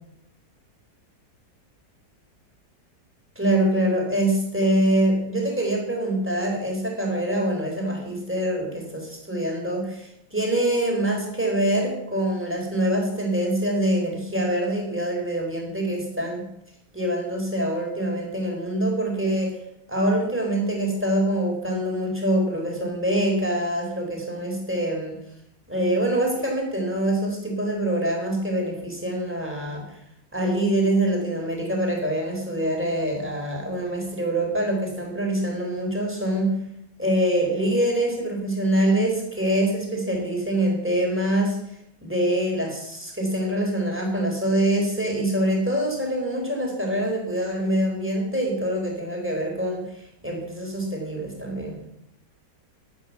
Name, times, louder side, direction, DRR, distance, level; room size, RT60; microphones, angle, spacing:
voice 1, 3.4-16.5 16.9-19.6 19.9-25.2 25.7-30.0 30.3-36.5 37.0-41.6 42.0-51.8, right 1 dB, 5° right, 0 dB, 3.9 m, -25 dB
12.0 x 8.5 x 8.2 m, 0.79 s
omnidirectional pair, 1.9 m